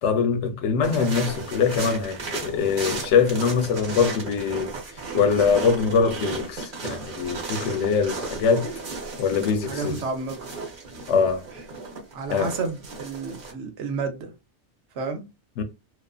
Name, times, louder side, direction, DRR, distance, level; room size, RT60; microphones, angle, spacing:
voice 1, 0.0-4.7 5.1-8.7 9.2-10.0 11.1-11.4 12.3-12.5 15.6-15.7, left 5 dB, 85° left, 0.9 m, -23 dB
sound 1, 0.8-13.5, right 3 dB, 50° right, 0.9 m, -35 dB
voice 2, 9.6-10.5 12.1-14.3 14.9-15.2, right 4 dB, 75° right, 1.0 m, -31 dB
2.4 x 2.4 x 2.3 m
omnidirectional pair, 1.2 m